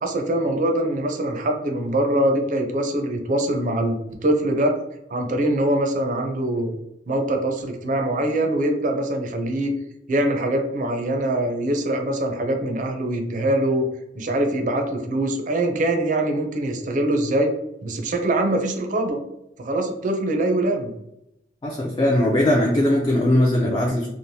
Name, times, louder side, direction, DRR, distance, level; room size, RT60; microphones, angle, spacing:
voice 1, 0.0-4.7 5.1-6.8 7.1-9.7 10.1-13.8 14.2-17.5 17.8-19.2 19.6-20.9, right 1 dB, 40° right, 4 dB, 0.4 m, -23 dB
voice 2, 21.6-24.1, left 1 dB, 20° left, -2 dB, 0.3 m, -19 dB
3.1 x 2.0 x 2.6 m, 0.83 s
head